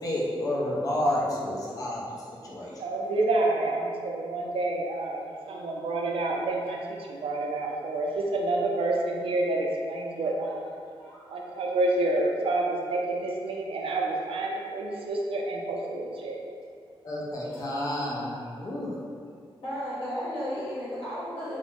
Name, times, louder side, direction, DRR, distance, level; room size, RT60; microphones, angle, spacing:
voice 1, 0.0-2.2 2.4-2.8 17.0-19.0, left 1 dB, 40° left, -5 dB, 0.5 m, -30 dB
voice 2, 2.8-10.6 11.3-16.4, right 2 dB, 70° right, 0 dB, 0.4 m, -28 dB
voice 3, 5.3-5.7 10.1-10.2 11.0-11.3 17.4-17.8 19.6-21.6, equal, 70° left, -10 dB, 1.1 m, -35 dB
2.5 x 2.1 x 3.0 m, 2.3 s
wide cardioid pair, 165°, 10 cm